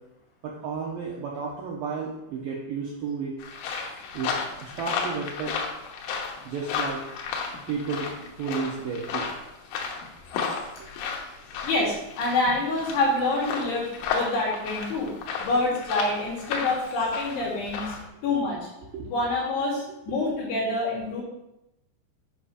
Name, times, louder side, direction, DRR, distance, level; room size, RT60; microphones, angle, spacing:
voice 1, 0.4-3.3 4.1-4.3 4.6-5.6 6.4-7.0 7.7-8.1 8.4-9.3 10.8-10.9 18.9-19.1, right 5 dB, 75° right, -2 dB, 2.1 m, -32 dB
sound 1, 3.4-18.1, left 5 dB, 85° left, 3.7 m, -33 dB
voice 2, 11.6-15.1 15.4-17.9 18.2-18.7 19.0-21.2, left 2 dB, 65° left, -6 dB, 5.0 m, -26 dB
10.0 x 5.3 x 5.1 m, 0.90 s
omnidirectional pair, 5.3 m